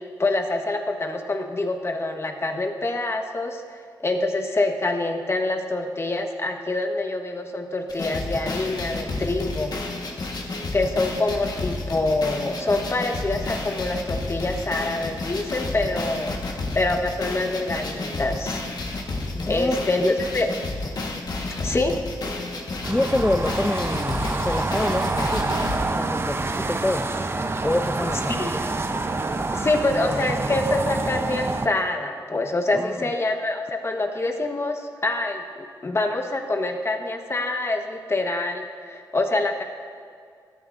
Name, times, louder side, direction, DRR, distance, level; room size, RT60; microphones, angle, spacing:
voice 1, 0.0-9.8 10.7-16.4 16.7-18.6 19.5-20.0 20.3-20.5 21.6-22.0 28.4-28.6 29.5-39.6, left 2 dB, 35° left, 5 dB, 1.2 m, -26 dB
sound 1, 7.9-25.8, left 2 dB, 55° left, 1.4 m, -31 dB
voice 2, 19.3-20.2 22.9-25.4 25.9-27.1 27.6-28.4 32.7-33.1, left 1 dB, 15° left, 6 dB, 0.5 m, -26 dB
sound 2, 22.8-31.7, right 3 dB, 30° right, 0.7 m, -27 dB
17.0 x 11.5 x 2.6 m, 2.2 s
cardioid pair, 60°, 8 cm